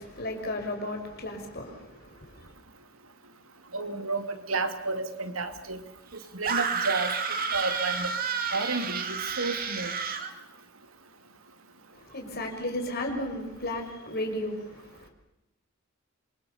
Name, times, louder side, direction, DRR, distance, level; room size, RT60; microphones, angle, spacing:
voice 1, 0.0-2.5 11.9-15.1, left 1 dB, 50° left, 3 dB, 6.0 m, -34 dB
voice 2, 3.7-5.8 6.3-7.1 7.5-8.1 8.5-9.9, right 3 dB, 85° right, 8 dB, 2.5 m, -31 dB
sound 1, 6.4-10.3, right 6 dB, 45° right, 2.4 m, -30 dB
27.0 x 24.0 x 7.1 m, 0.90 s
head